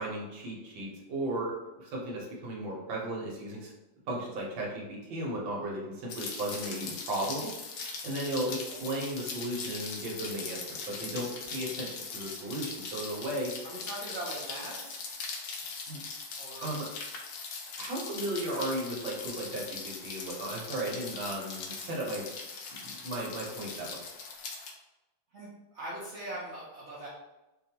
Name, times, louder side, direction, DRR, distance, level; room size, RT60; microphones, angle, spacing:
voice 1, 0.0-3.7 4.1-7.5 7.8-13.5 15.9-16.0 16.6-16.9 17.8-22.3 22.8-24.0, right 1 dB, 80° right, -3 dB, 1.7 m, -35 dB
Rain, 6.1-24.7, left 4 dB, 80° left, 1.4 m, -40 dB
voice 2, 13.6-15.0 16.4-16.7 25.3-25.5 25.7-27.1, right 1 dB, 65° right, -7 dB, 0.7 m, -41 dB
5.0 x 2.3 x 2.8 m, 1.0 s
omnidirectional pair, 2.1 m